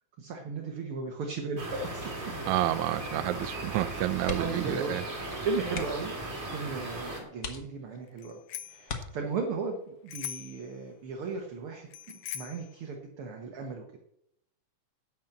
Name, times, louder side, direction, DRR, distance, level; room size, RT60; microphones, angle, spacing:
voice 1, 0.2-2.1 4.4-6.1 6.5-8.4 8.7-11.9 12.3-13.9, right 4 dB, 55° right, 3 dB, 1.7 m, -36 dB
sound 1, 1.6-7.2, right 2 dB, 30° right, 2.6 m, -37 dB
voice 2, 2.5-5.0, right 14 dB, 80° right, 15 dB, 2.0 m, -29 dB
sound 2, 4.2-4.7 5.0-5.2 5.7-6.2 6.8-6.9 7.4-8.1 8.8-9.6 11.2-11.5 11.9-12.0, left 5 dB, 50° left, 1.0 m, -39 dB
Bicycle bell, 8.2-8.9 10.1-10.6 11.9-12.7, left 10 dB, 75° left, 1.3 m, -40 dB
11.5 x 5.9 x 7.8 m, 0.76 s
omnidirectional pair, 3.4 m